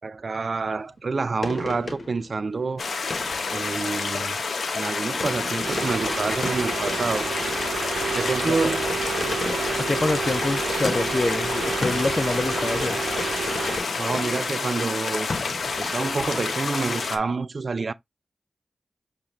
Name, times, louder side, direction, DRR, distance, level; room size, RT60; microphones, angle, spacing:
voice 1, 0.0-2.8 3.5-4.4 4.7-7.3 8.1-8.9 14.0-15.3 15.8-17.9, right 4 dB, 60° right, 0.3 m, -28 dB
sound 1, 0.6-1.1 1.4-17.0, left 3 dB, 60° left, 1.3 m, -38 dB
sound 2, 2.8-17.2, left 4 dB, 80° left, 0.8 m, -29 dB
sound 3, 5.6-13.8, right 6 dB, 90° right, 0.8 m, -30 dB
voice 2, 9.8-13.0, left 2 dB, 40° left, 0.4 m, -26 dB
6.8 x 2.5 x 3.1 m
cardioid pair, 45°, 0 cm